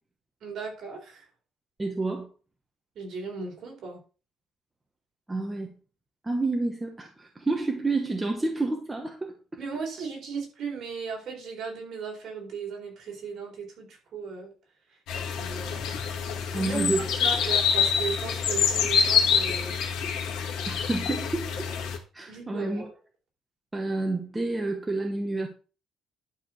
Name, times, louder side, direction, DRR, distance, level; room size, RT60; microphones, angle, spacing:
voice 1, 0.4-1.3 3.0-4.0 9.6-14.5 15.4-15.8 16.5-19.8 22.3-22.9, right 5 dB, 50° right, 0 dB, 4.3 m, -36 dB
voice 2, 1.8-2.3 5.3-5.7 6.2-9.3 16.5-17.0 20.7-21.7 22.1-22.9 23.7-25.5, right 2 dB, 10° right, 2 dB, 1.1 m, -29 dB
sound 1, 15.1-22.0, left 7 dB, 85° left, 2.2 m, -26 dB
11.5 x 4.5 x 6.4 m, 0.36 s
cardioid pair, 180°, 0 cm